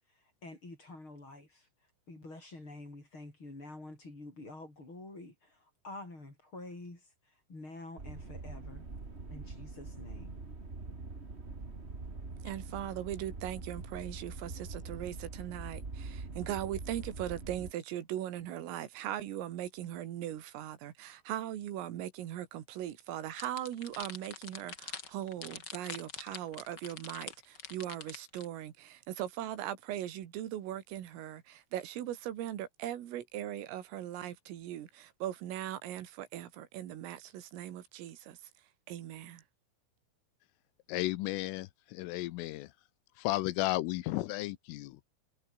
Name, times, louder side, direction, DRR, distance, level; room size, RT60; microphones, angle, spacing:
voice 1, 0.4-1.7 2.1-7.0 7.5-8.9 9.3-10.3, left 2 dB, 25° left, 7.6 m, -48 dB
sound 1, 8.0-17.7, right 3 dB, 60° right, 0.6 m, -44 dB
voice 2, 12.4-38.4 38.9-39.4, right 12 dB, 80° right, 4.9 m, -39 dB
sound 2, 23.4-28.4, left 5 dB, 50° left, 1.3 m, -44 dB
voice 3, 40.9-42.7 43.2-45.0, left 18 dB, 85° left, 3.4 m, -34 dB
omnidirectional pair, 6.0 m